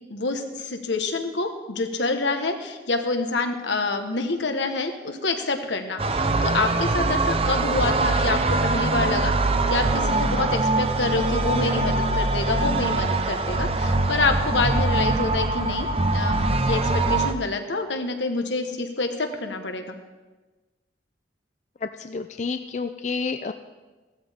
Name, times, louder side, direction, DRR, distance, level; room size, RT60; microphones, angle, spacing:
voice 1, 0.1-19.9, left 3 dB, 85° left, 5 dB, 1.3 m, -27 dB
sound 1, 6.0-17.3, right 2 dB, 35° right, 0.6 m, -23 dB
voice 2, 21.8-23.5, left 4 dB, 40° left, 8 dB, 0.4 m, -30 dB
16.0 x 13.0 x 3.6 m, 1.2 s
head